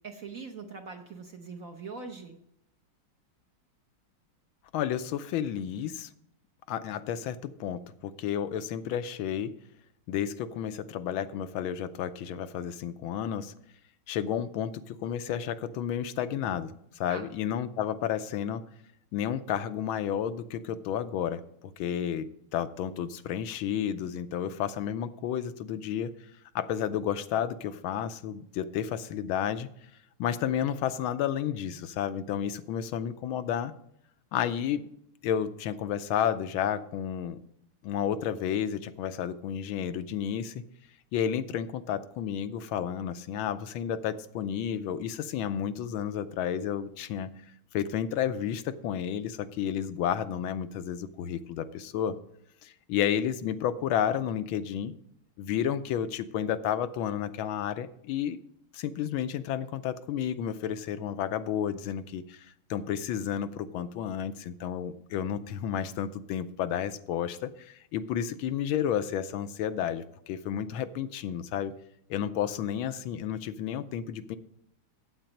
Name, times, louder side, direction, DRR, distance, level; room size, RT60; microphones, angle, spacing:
voice 1, 0.0-2.4 17.1-17.3, right 4 dB, 55° right, 3 dB, 1.0 m, -42 dB
voice 2, 4.7-6.1 6.7-9.5 10.1-13.5 14.1-18.6 19.1-21.4 21.8-26.1 26.5-29.7 30.2-33.7 34.3-34.8 35.2-37.4 37.8-40.6 41.1-47.4 47.7-52.2 52.6-54.9 55.4-58.4 58.7-71.7 72.1-74.4, left 9 dB, 80° left, 11 dB, 1.4 m, -31 dB
8.9 x 8.1 x 5.3 m, 0.75 s
omnidirectional pair, 2.3 m